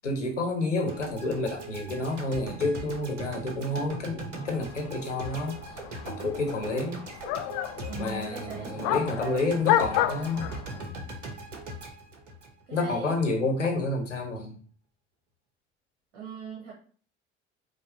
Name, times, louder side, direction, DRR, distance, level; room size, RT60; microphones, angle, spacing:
voice 1, 0.0-5.6 6.0-7.0 8.0-10.5 12.7-14.6, left 2 dB, 85° left, 2 dB, 0.8 m, -29 dB
sound 1, 0.9-13.1, right 3 dB, 80° right, 0.7 m, -40 dB
sound 2, 4.4-10.8, left 12 dB, 50° left, 0.4 m, -31 dB
voice 2, 7.8-9.8 10.7-11.1 12.7-13.2 16.1-16.7, right 4 dB, 65° right, -2 dB, 1.0 m, -41 dB
4.9 x 2.0 x 3.8 m, 0.44 s
figure-of-eight pair, 60°, 35 cm